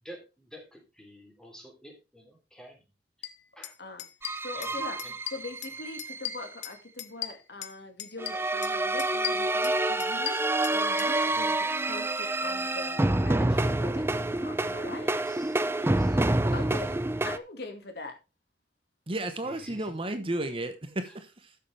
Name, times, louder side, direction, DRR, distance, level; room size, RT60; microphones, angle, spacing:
voice 1, 0.0-2.9 3.5-3.8 4.5-5.1 11.3-11.5 14.9-16.5 19.4-20.0 21.1-21.2, equal, 5° left, 3.3 m, -50 dB
sound 1, 3.2-3.3 3.6-3.7 4.0-4.7 5.0-5.7 6.0-7.7 8.0-8.7 9.0-11.1, left 13 dB, 85° left, 0.9 m, -37 dB
sound 2, 4.2-6.5 8.2-17.4, right 2 dB, 15° right, 0.5 m, -28 dB
voice 2, 4.4-15.1 16.5-18.2, left 2 dB, 65° left, 2.1 m, -42 dB
voice 3, 19.1-21.6, right 1 dB, 30° right, 1.1 m, -33 dB
13.0 x 6.7 x 3.3 m
head